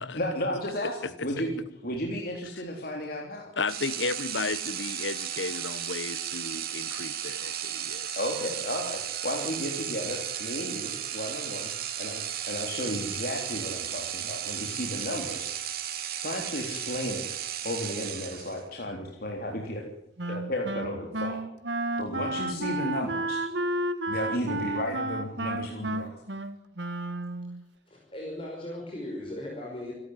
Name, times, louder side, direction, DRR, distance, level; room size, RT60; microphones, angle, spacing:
voice 1, 0.0-1.5 1.8-3.5 7.4-7.6 8.2-11.7 12.0-12.2 12.5-15.5 16.2-17.2 17.6-19.8 20.3-21.4 22.0-23.6 24.1-26.2, left 1 dB, 50° left, 3.7 m, -33 dB
voice 2, 3.6-8.2, left 4 dB, 80° left, 1.2 m, -34 dB
sound 1, 3.7-18.7, right 10 dB, 55° right, 2.7 m, -34 dB
Wind instrument woodwind instrument, 20.2-27.6, right 2 dB, 75° right, 1.7 m, -32 dB
voice 3, 27.9-29.9, left 1 dB, 30° left, 5.4 m, -37 dB
28.5 x 12.5 x 9.7 m
head